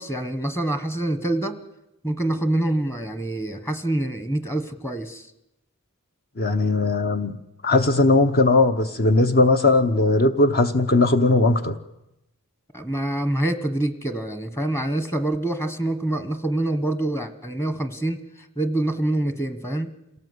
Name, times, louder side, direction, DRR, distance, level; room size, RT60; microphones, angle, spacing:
voice 1, 0.0-1.6 2.0-5.3 12.7-18.2 18.6-19.9, right 1 dB, 15° left, 10 dB, 1.3 m, -26 dB
voice 2, 6.4-7.4 7.6-11.8, left 2 dB, 45° left, 8 dB, 0.9 m, -19 dB
27.0 x 17.5 x 8.1 m, 0.91 s
head